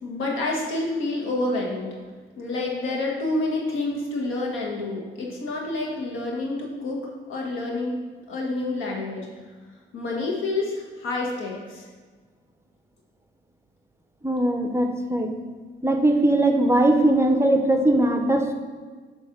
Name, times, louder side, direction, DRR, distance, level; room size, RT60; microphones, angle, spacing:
voice 1, 0.0-1.9 2.4-8.0 8.3-9.3 9.9-11.9, left 2 dB, 80° left, -1 dB, 1.7 m, -28 dB
voice 2, 14.2-15.3 15.8-18.5, right 1 dB, 15° right, 5 dB, 0.7 m, -20 dB
7.6 x 3.2 x 6.0 m, 1.5 s
cardioid pair, 90°, 20 cm